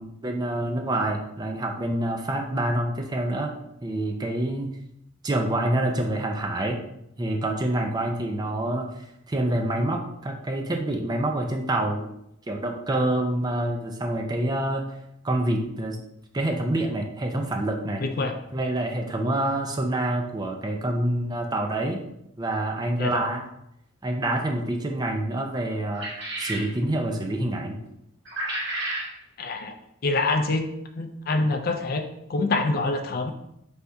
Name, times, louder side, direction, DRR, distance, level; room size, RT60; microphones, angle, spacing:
voice 1, 0.0-3.5 3.8-4.7 5.2-6.8 7.2-12.1 12.5-14.8 15.2-16.0 16.3-18.0 18.5-22.0 22.4-23.4 24.0-26.1 26.4-27.8, right 1 dB, 20° right, 3 dB, 0.4 m, -27 dB
voice 2, 18.0-18.4 23.0-23.2 29.4-29.7 30.0-30.7 31.0-33.3, left 3 dB, 45° left, 6 dB, 0.4 m, -26 dB
sound 1, 25.9-26.7 28.3-29.1, right 1 dB, 60° right, 1.4 m, -31 dB
3.5 x 2.7 x 4.4 m, 0.79 s
head